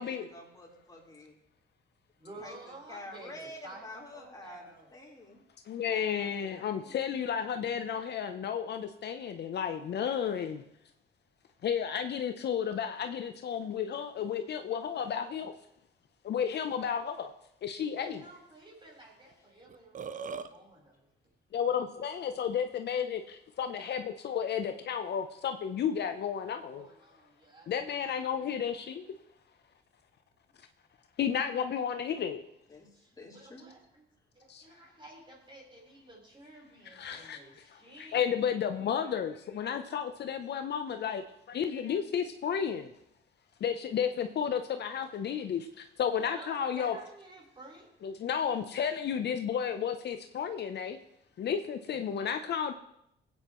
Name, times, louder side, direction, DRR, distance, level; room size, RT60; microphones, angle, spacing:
voice 1, 0.0-1.3 2.4-5.4 5.9-7.1 32.7-33.7, left 1 dB, 20° left, -4 dB, 4.0 m, -49 dB
voice 2, 2.2-4.9 17.9-21.1 26.7-27.7 28.3-28.5 32.9-34.0 34.3-38.4 46.3-47.9 51.9-52.1, right 2 dB, 25° right, -2 dB, 4.1 m, -52 dB
voice 3, 5.7-10.6 11.6-15.5 16.2-17.3 17.6-18.2 21.5-26.9 27.7-29.1 31.2-32.4 34.5-34.6 36.9-42.9 43.6-47.0 48.0-51.0 51.4-52.7, left 8 dB, 60° left, 7 dB, 0.7 m, -32 dB
Burping eructation, 19.7-20.5, right 5 dB, 40° right, 0.7 m, -39 dB
18.0 x 8.9 x 3.1 m, 0.77 s
cardioid pair, 90°, 20 cm